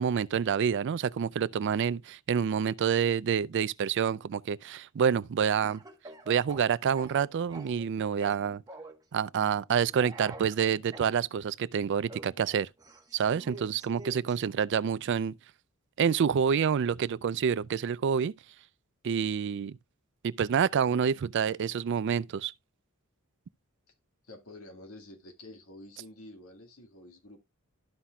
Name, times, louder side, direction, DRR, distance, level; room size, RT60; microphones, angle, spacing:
voice 1, 0.0-5.8 6.3-8.6 9.1-12.7 13.1-15.3 16.0-18.3 19.0-19.8 20.2-22.5, right 7 dB, 55° right, 0.4 m, -28 dB
Speech / Cough, 5.6-7.9 8.2-9.0 9.9-11.1 12.1-14.4, right 2 dB, 15° right, 1.2 m, -47 dB
voice 2, 24.2-27.4, left 1 dB, 75° left, 2.0 m, -49 dB
13.0 x 5.8 x 2.3 m
head